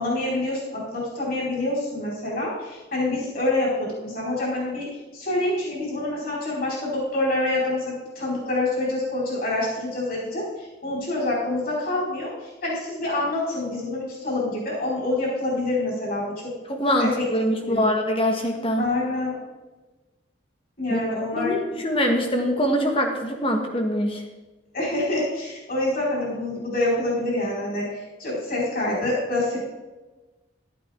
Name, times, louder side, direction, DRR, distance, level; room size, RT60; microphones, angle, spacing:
voice 1, 0.0-4.9 5.1-16.5 17.0-17.2 17.7-17.9 18.8-19.4 20.8-21.6 24.7-27.9 28.2-29.6, left 2 dB, 50° left, -5 dB, 4.4 m, -26 dB
voice 2, 16.7-18.8 20.9-21.0 21.3-24.2, equal, 30° left, 3 dB, 1.5 m, -23 dB
12.0 x 11.5 x 3.6 m, 1.2 s
head